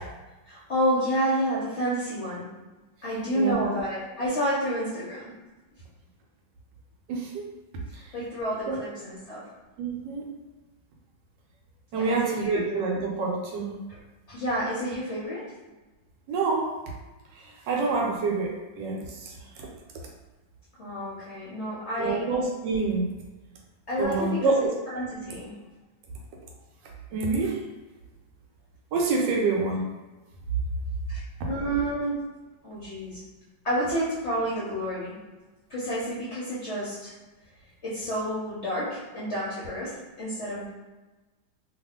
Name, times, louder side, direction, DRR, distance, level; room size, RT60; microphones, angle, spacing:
voice 1, 0.5-2.5 3.0-5.3 8.1-9.5 11.9-12.8 13.9-14.0 14.3-15.4 20.8-22.2 23.9-24.5 24.9-25.5 31.1-31.2 31.5-32.2 32.6-33.2 33.6-35.2 35.7-37.1 37.8-40.7, equal, 60° left, -8 dB, 0.7 m, -29 dB
voice 2, 3.3-3.8 7.1-7.4 7.9-8.0 8.7-8.8 9.8-10.2 11.9-13.8 16.3-16.7 17.4-19.7 22.0-23.1 24.0-24.7 27.1-27.6 28.9-29.8, right 3 dB, 75° right, -1 dB, 1.2 m, -27 dB
2.9 x 2.4 x 3.5 m, 1.2 s
omnidirectional pair, 2.1 m